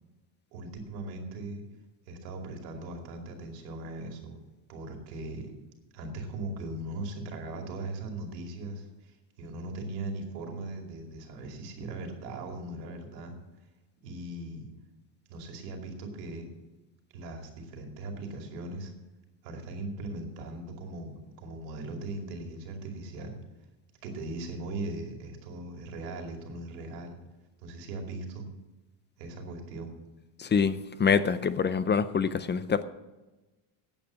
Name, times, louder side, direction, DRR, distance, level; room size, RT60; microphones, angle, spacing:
voice 1, 0.5-1.6 2.1-4.4 4.7-5.5 5.9-13.4 14.0-14.7 15.3-16.5 17.1-18.9 19.4-23.4 24.0-27.2 27.6-28.5 29.2-29.9, right 2 dB, 90° right, 3 dB, 2.6 m, -39 dB
voice 2, 30.4-32.8, left 6 dB, 25° left, 14 dB, 0.5 m, -26 dB
8.9 x 8.5 x 8.4 m, 1.1 s
supercardioid pair, 95°, 48 cm